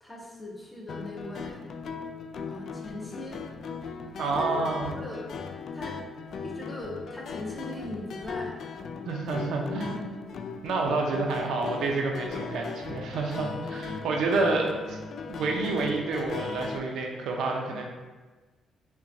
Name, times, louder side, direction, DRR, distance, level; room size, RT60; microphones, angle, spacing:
voice 1, 0.0-1.7 2.5-3.4 4.2-5.3 5.7-6.0 6.4-8.6 9.7-10.0 13.7-14.2 17.7-17.8, left 1 dB, 15° left, -2 dB, 0.8 m, -40 dB
sound 1, 0.9-16.8, left 5 dB, 60° left, 0.3 m, -38 dB
voice 2, 4.2-4.9 9.1-10.2 10.6-15.0 15.3-17.8, right 3 dB, 80° right, 1 dB, 0.5 m, -29 dB
5.7 x 2.2 x 2.6 m, 1.3 s
cardioid pair, 90°, 0 cm